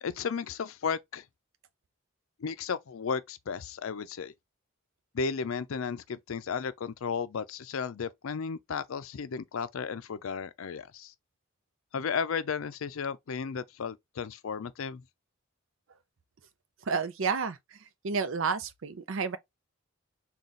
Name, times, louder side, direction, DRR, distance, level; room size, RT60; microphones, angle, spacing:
voice 1, 0.0-1.2 2.4-4.3 5.1-11.1 11.9-15.0, left 6 dB, 75° left, 0.5 m, -34 dB
voice 2, 16.9-17.8 18.0-19.4, right 5 dB, 65° right, 0.5 m, -30 dB
3.8 x 2.3 x 4.0 m
head